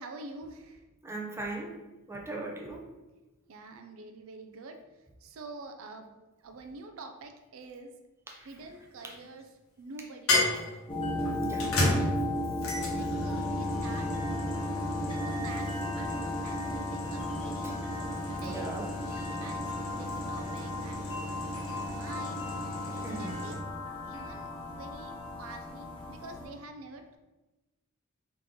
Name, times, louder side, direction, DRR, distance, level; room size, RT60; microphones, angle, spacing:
voice 1, 0.0-0.9 3.5-4.8 5.2-6.1 6.4-7.9 8.4-9.5 9.8-10.9 11.6-12.3 12.8-14.1 14.8-17.8 18.3-22.4 22.9-23.6 24.1-27.2, right 3 dB, 70° right, 6 dB, 0.4 m, -47 dB
voice 2, 1.0-1.8 2.1-2.8 8.3-8.5 11.4-11.7 17.6-17.8 18.4-18.9 22.9-23.5, right 2 dB, 15° right, -1 dB, 0.6 m, -39 dB
sound 1, 8.6-9.2 10.3-23.6, left 1 dB, 75° left, 1.1 m, -34 dB
sound 2, 10.9-26.5, left 1 dB, 25° left, 0.8 m, -35 dB
3.8 x 3.0 x 3.6 m, 1.1 s
head